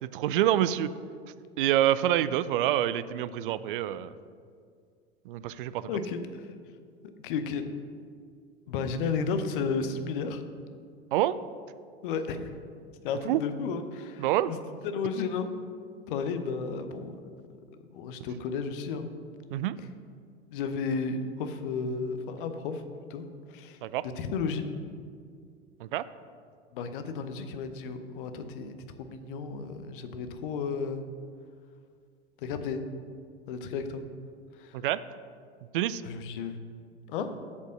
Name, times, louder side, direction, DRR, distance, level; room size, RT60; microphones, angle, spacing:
voice 1, 0.0-0.9 1.6-4.1 5.3-5.9 11.1-11.4 13.3-13.4 14.2-14.5 19.5-19.8 23.8-24.1 25.8-26.0 34.7-35.0 35.7-36.0, right 12 dB, 55° right, 15 dB, 0.4 m, -26 dB
voice 2, 5.9-6.5 7.2-7.6 8.7-10.4 12.0-12.6 13.0-14.6 14.8-15.5 16.1-17.2 17.9-19.1 20.5-22.8 23.1-23.3 23.5-23.8 24.2-24.7 26.7-31.0 32.4-32.8 33.5-34.0 34.6-34.8 36.0-36.6 37.1-37.3, left 5 dB, 50° left, 8 dB, 0.9 m, -33 dB
8.2 x 5.3 x 6.4 m, 2.1 s
figure-of-eight pair, 80°, 33 cm